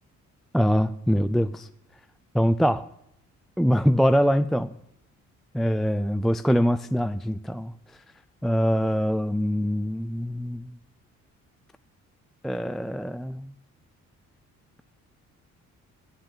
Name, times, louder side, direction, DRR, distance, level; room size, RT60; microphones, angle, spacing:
voice 1, 0.5-1.7 2.3-2.9 3.6-4.8 5.5-7.7 8.4-10.7 12.4-13.5, equal, ahead, 13 dB, 0.4 m, -23 dB
11.5 x 7.4 x 9.1 m, 0.79 s
cardioid pair, 90°, 30 cm